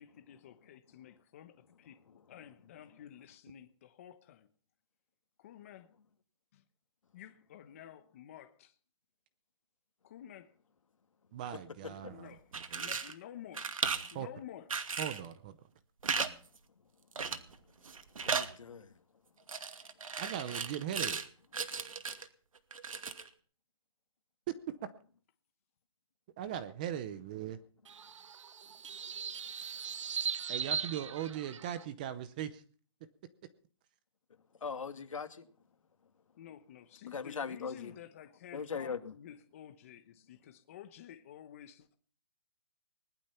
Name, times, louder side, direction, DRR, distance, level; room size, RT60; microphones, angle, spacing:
voice 1, 0.0-4.5 5.4-5.9 6.5-6.6 7.1-8.7 10.0-10.5 11.8-13.8 14.1-14.7 36.4-42.0, left 10 dB, 25° left, 1.1 m, -52 dB
voice 2, 11.3-13.0 14.1-14.3 15.0-15.6 20.2-21.2 24.5-24.6 26.4-27.6 30.5-32.6, right 10 dB, 15° right, 0.7 m, -39 dB
sound 1, 12.4-13.1 13.5-14.1 14.7-15.3 16.0-16.3 16.6-16.7 17.2-17.5 17.8-18.5 19.5-21.3 21.5-22.3 22.7-23.3, right 5 dB, 85° right, 2.5 m, -36 dB
voice 3, 18.2-18.9 34.6-35.4 37.1-38.0 38.5-39.0, left 5 dB, 70° left, 2.5 m, -40 dB
sound 2, 27.8-31.8, right 7 dB, 65° right, 0.7 m, -39 dB
20.0 x 12.0 x 5.8 m
hypercardioid pair, 175°, 17 cm